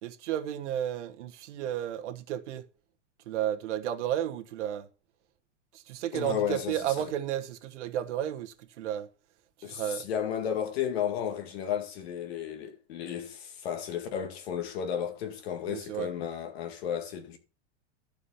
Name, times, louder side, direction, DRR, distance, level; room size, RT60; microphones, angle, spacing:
voice 1, 0.0-2.7 3.3-4.9 5.7-9.1 9.6-10.1 15.7-16.1, right 11 dB, 70° right, 1.3 m, -33 dB
voice 2, 6.1-6.8 9.6-17.4, left 9 dB, 55° left, 2.1 m, -33 dB
13.0 x 4.9 x 5.7 m
supercardioid pair, 170°, 37 cm